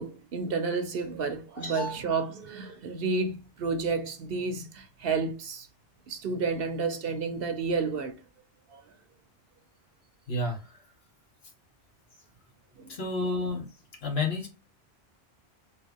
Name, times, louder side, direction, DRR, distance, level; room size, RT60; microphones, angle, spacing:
voice 1, 0.0-5.7 6.1-8.2 8.7-8.8 12.8-12.9, right 4 dB, 60° right, 0.8 m, -31 dB
voice 2, 1.6-2.0 10.3-10.7 12.9-13.7 14.0-14.5, left 2 dB, 65° left, 1.5 m, -30 dB
3.1 x 3.1 x 3.4 m
omnidirectional pair, 1.1 m